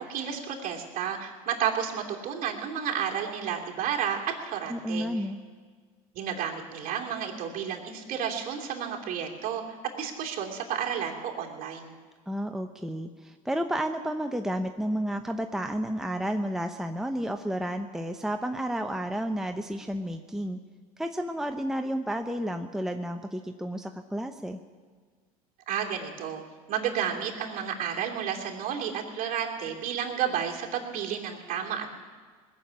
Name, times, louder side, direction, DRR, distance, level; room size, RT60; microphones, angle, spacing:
voice 1, 0.0-4.2 4.4-5.1 6.1-11.9 25.7-26.4 26.7-32.0, right 8 dB, 50° right, 1 dB, 3.0 m, -31 dB
voice 2, 4.7-5.4 12.3-20.6 21.0-24.6, equal, ahead, 6 dB, 0.8 m, -31 dB
20.0 x 7.2 x 9.0 m, 1.5 s
hypercardioid pair, 90°, 18 cm